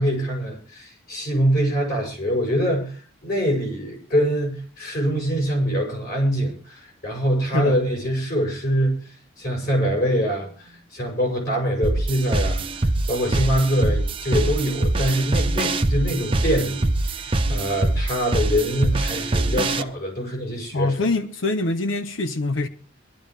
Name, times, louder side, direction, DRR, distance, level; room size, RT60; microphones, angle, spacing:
voice 1, 0.0-21.1, equal, 50° left, 7.6 m, -24 dB
sound 1, 11.8-19.8, right 2 dB, 25° right, 0.8 m, -23 dB
voice 2, 20.7-22.7, left 2 dB, 80° left, 0.8 m, -24 dB
23.5 x 11.5 x 3.3 m
head